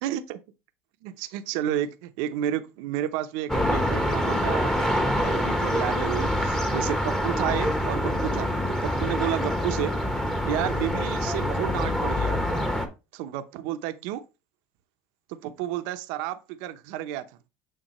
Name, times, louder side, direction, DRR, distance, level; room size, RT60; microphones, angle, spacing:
voice 1, 0.0-0.4 1.0-4.9 5.2-10.0 10.5-12.4 13.1-14.2 15.3-17.3, right 12 dB, 70° right, 0.8 m, -31 dB
sound 1, 3.5-12.9, equal, 5° left, 1.2 m, -26 dB
9.0 x 3.9 x 3.1 m
supercardioid pair, 110°, 7 cm